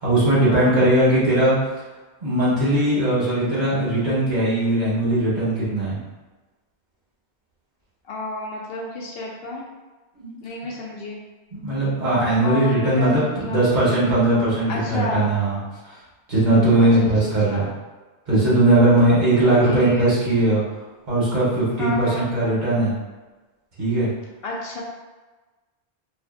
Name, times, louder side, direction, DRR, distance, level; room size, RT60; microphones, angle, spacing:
voice 1, 0.0-1.6 2.2-6.0 10.2-10.3 11.5-15.6 16.3-17.7 18.3-20.6 21.1-23.0 23.8-24.1, right 1 dB, 45° right, -9 dB, 1.2 m, -19 dB
voice 2, 0.5-0.8 8.1-9.6 10.4-11.2 12.4-13.6 14.7-15.3 16.8-17.7 19.4-20.1 21.8-22.3 24.4-24.8, left 2 dB, 70° left, -2 dB, 0.7 m, -31 dB
2.5 x 2.5 x 2.5 m, 1.2 s
omnidirectional pair, 1.1 m